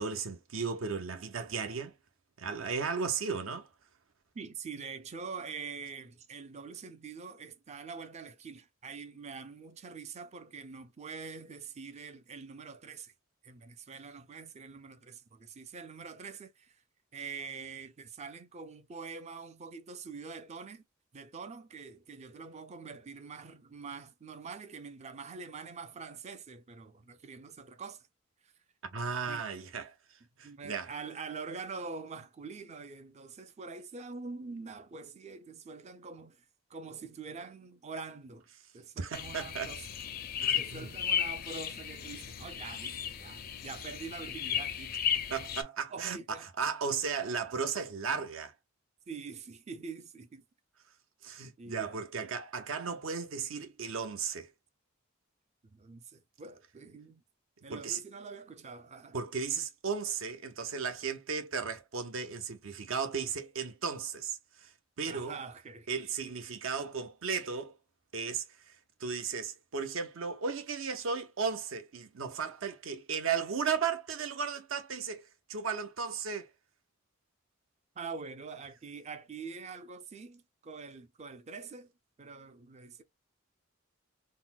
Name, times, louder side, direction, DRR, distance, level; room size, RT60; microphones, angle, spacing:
voice 1, 0.0-1.9 2.4-3.7 28.9-29.9 30.4-30.9 39.0-39.7 40.4-40.9 45.3-48.5 51.2-54.5 57.7-58.0 59.1-64.7 65.0-65.4 65.9-67.7 68.1-68.7 69.0-75.2 75.5-76.5, right 5 dB, 70° right, 0.7 m, -35 dB
voice 2, 4.3-13.1 13.4-16.8 17.1-20.8 21.1-28.1 28.4-28.5 29.3-29.4 30.4-36.4 36.7-38.5 38.7-39.8 40.5-44.9 45.9-46.5 49.1-50.4 51.6-52.0 55.6-57.2 57.6-59.2 65.1-65.9 78.0-81.9 82.2-83.0, right 5 dB, 30° right, 0.4 m, -45 dB
sound 1, 39.1-45.6, left 8 dB, 45° left, 0.4 m, -35 dB
3.9 x 2.1 x 2.2 m
head